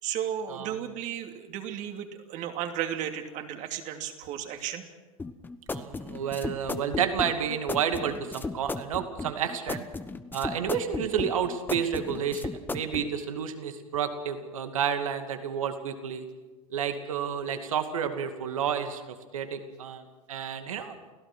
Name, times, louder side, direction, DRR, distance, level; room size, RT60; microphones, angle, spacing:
voice 1, 0.0-4.8, right 10 dB, 45° right, 5 dB, 2.7 m, -34 dB
sound 1, 5.2-13.1, left 3 dB, 10° left, 1.1 m, -35 dB
voice 2, 5.7-9.8 10.3-16.3 16.7-19.0 19.3-21.0, right 8 dB, 75° right, 7 dB, 2.5 m, -30 dB
29.0 x 16.5 x 6.2 m, 1.3 s
hypercardioid pair, 100°, 17 cm